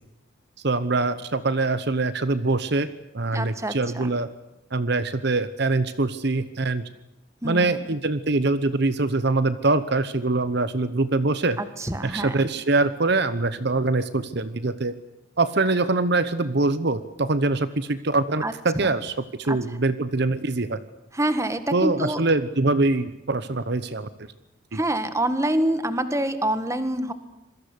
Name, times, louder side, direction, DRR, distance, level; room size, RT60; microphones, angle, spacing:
voice 1, 0.6-2.9 3.1-4.3 4.7-6.8 7.4-11.6 12.0-15.0 15.4-20.8 21.7-24.1 24.7-24.8, right 3 dB, 55° right, 14 dB, 1.0 m, -23 dB
voice 2, 3.3-4.1 7.4-7.8 11.6-12.5 18.4-18.9 19.5-19.6 21.1-22.2 24.7-27.1, right 1 dB, 15° right, 10 dB, 1.6 m, -26 dB
27.0 x 22.0 x 8.3 m, 0.86 s
head